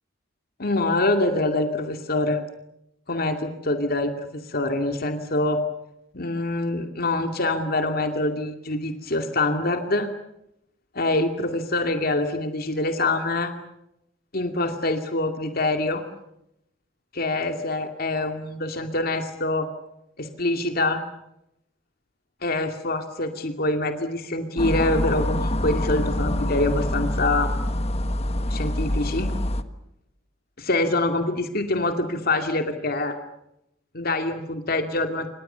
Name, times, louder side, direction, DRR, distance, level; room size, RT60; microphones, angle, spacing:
voice 1, 0.6-2.4 3.1-5.6 6.1-10.1 10.9-13.5 14.3-16.0 17.1-19.7 20.2-21.0 22.4-27.5 28.5-29.3 30.6-33.2 33.9-35.3, left 2 dB, 50° left, 6 dB, 2.4 m, -25 dB
sound 1, 24.6-29.6, left 1 dB, 35° left, 1.5 m, -25 dB
28.5 x 26.5 x 6.9 m, 0.82 s
head